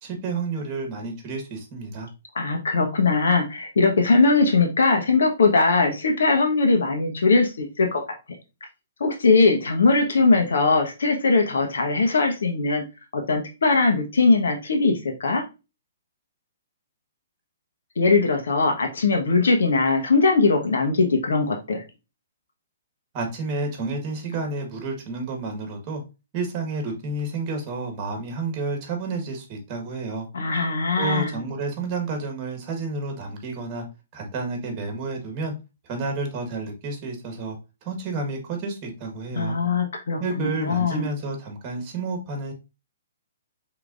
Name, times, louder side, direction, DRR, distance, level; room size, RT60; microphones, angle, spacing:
voice 1, 0.0-2.1 23.1-26.0 26.3-30.3 31.0-33.8 34.1-35.5 35.8-37.5 37.8-39.6 40.2-42.5, right 3 dB, 30° right, 4 dB, 1.5 m, -30 dB
voice 2, 2.3-8.0 9.0-12.8 13.1-15.4 18.0-21.8 30.3-31.3 39.3-41.1, left 3 dB, 75° left, 3 dB, 1.2 m, -20 dB
4.6 x 3.6 x 2.5 m, 0.28 s
hypercardioid pair, 140°, 0 cm